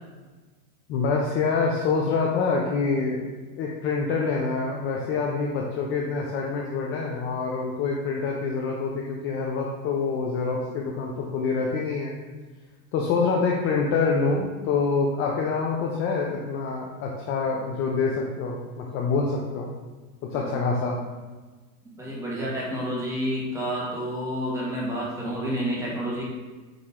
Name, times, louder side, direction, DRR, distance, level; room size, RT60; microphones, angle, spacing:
voice 1, 0.9-3.2 3.6-12.1 12.9-19.7 20.2-21.0, left 4 dB, 30° left, -1 dB, 0.5 m, -26 dB
voice 2, 20.3-21.0 21.9-26.2, equal, 5° right, -6 dB, 1.6 m, -30 dB
8.9 x 3.1 x 3.6 m, 1.3 s
supercardioid pair, 145°, 45 cm